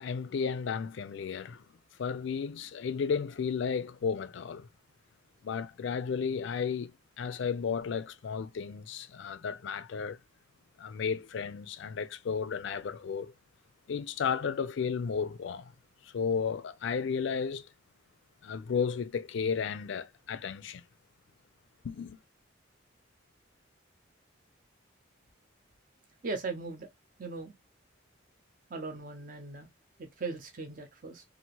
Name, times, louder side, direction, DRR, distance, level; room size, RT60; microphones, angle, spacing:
voice 1, 0.0-1.7 2.0-4.7 5.4-10.2 10.8-13.3 13.9-15.7 16.0-17.7 18.4-20.8 21.8-22.2, left 6 dB, 60° left, 0.3 m, -33 dB
voice 2, 26.2-26.9 27.2-27.5 28.7-29.7 30.0-31.2, right 3 dB, 40° right, 0.6 m, -38 dB
2.8 x 2.4 x 2.9 m
head